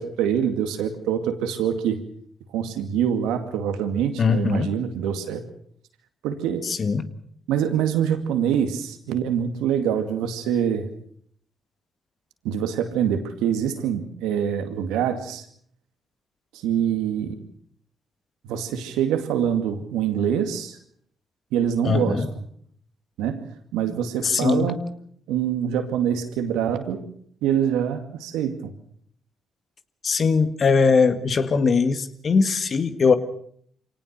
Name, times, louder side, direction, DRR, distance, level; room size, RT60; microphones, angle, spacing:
voice 1, 0.0-2.0 2.5-5.4 6.2-6.7 7.5-10.9 12.4-15.4 16.5-17.4 18.4-20.8 21.5-22.4 23.2-24.8 25.3-27.0 27.4-28.7, right 9 dB, 85° right, 8 dB, 2.2 m, -25 dB
voice 2, 4.2-4.8 6.6-7.1 21.8-22.3 24.2-24.7 30.0-33.1, left 5 dB, 50° left, 11 dB, 1.7 m, -21 dB
24.5 x 18.5 x 6.7 m, 0.64 s
supercardioid pair, 60°, 0 cm